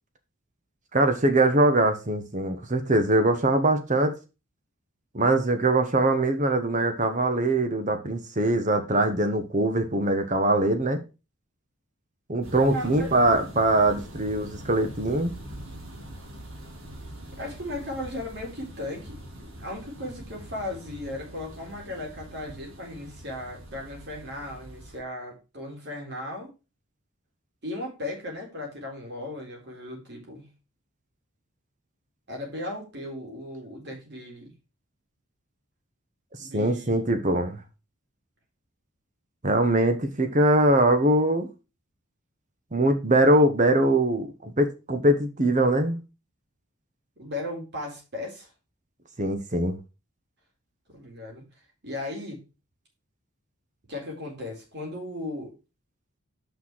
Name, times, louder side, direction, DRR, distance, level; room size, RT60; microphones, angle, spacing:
voice 1, 0.9-4.1 5.1-11.0 12.3-15.3 36.5-37.6 39.4-41.5 42.7-46.0 49.2-49.7, right 1 dB, 35° right, 8 dB, 1.1 m, -22 dB
sound 1, 12.4-25.0, right 1 dB, 65° right, 2.8 m, -43 dB
voice 2, 12.6-13.2 17.4-26.5 27.6-30.5 32.3-34.5 36.4-37.1 47.2-48.5 50.9-51.4 51.8-52.4 53.9-55.6, left 1 dB, 50° right, -1 dB, 4.1 m, -36 dB
6.2 x 6.0 x 6.0 m, 0.29 s
head